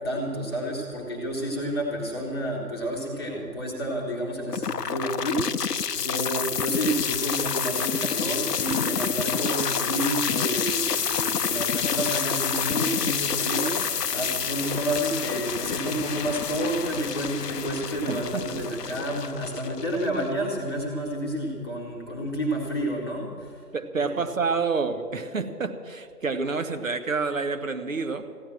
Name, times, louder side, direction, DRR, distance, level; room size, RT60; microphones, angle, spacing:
voice 1, 0.0-5.6 5.9-13.8 14.1-23.6 24.0-24.1, right 1 dB, 15° left, -4 dB, 1.2 m, -30 dB
sound 1, 4.5-20.5, left 7 dB, 75° left, 0.7 m, -28 dB
voice 2, 18.1-18.6 23.7-28.2, right 4 dB, 55° right, 8 dB, 1.1 m, -28 dB
15.0 x 10.0 x 7.5 m, 2.4 s
figure-of-eight pair, 155°, 48 cm